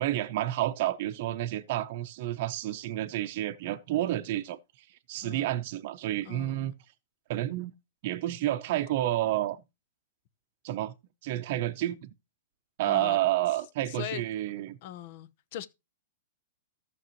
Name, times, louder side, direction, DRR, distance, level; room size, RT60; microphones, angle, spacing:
voice 1, 0.0-6.7 7.3-7.7 8.0-9.6 10.6-10.9 11.2-12.1 12.8-14.8, right 14 dB, 55° right, 0.7 m, -30 dB
voice 2, 5.2-5.5 6.2-6.7 12.8-13.2 13.9-14.2 14.8-15.7, left 12 dB, 55° left, 0.7 m, -40 dB
14.0 x 6.1 x 3.0 m
hypercardioid pair, 125°, 0 cm